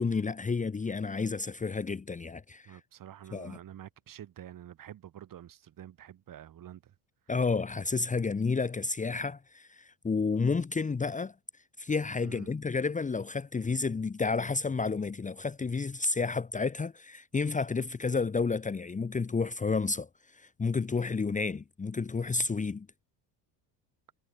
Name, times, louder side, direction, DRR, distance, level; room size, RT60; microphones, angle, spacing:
voice 1, 0.0-2.8 3.3-3.6 7.3-11.3 11.8-20.1 20.3-22.9, left 4 dB, 15° left, 1.4 m, -31 dB
voice 2, 2.7-6.9 12.2-12.5, right 11 dB, 40° right, 4.2 m, -48 dB
cardioid pair, 125°, 48 cm